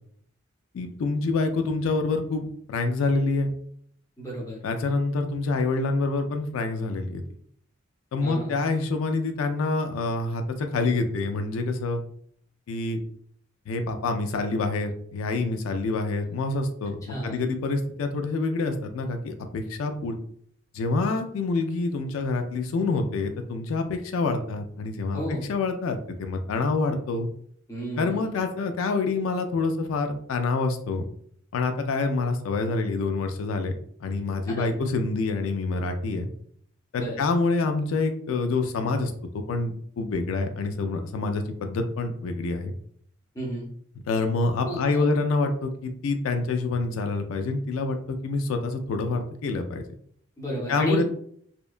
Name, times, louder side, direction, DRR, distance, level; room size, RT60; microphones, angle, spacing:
voice 1, 0.7-3.5 4.6-7.2 8.1-12.0 12.7-13.0 13.7-20.2 20.7-25.2 25.5-27.3 28.0-31.1 31.5-33.7 34.0-36.3 36.9-42.7 44.1-49.8 50.7-51.1, left 3 dB, 85° left, 6 dB, 0.3 m, -27 dB
voice 2, 4.2-4.6 8.2-8.5 17.1-17.4 25.1-25.4 27.7-28.3 34.5-34.6 37.0-37.2 43.3-43.7 44.6-45.0 50.4-51.1, equal, 15° left, -4 dB, 0.6 m, -31 dB
2.7 x 2.2 x 2.4 m, 0.63 s
head